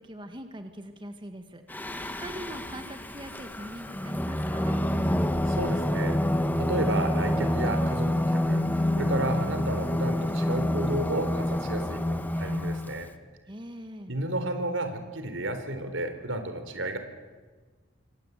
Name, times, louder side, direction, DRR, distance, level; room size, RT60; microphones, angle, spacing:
voice 1, 0.0-4.8 13.5-14.1, right 1 dB, 25° right, 6 dB, 1.8 m, -42 dB
Singing, 1.7-13.0, left 1 dB, 10° left, 1.3 m, -28 dB
voice 2, 5.5-6.2 6.6-13.1 14.1-17.0, right 1 dB, 85° right, 9 dB, 3.8 m, -32 dB
27.0 x 25.0 x 8.3 m, 1.4 s
head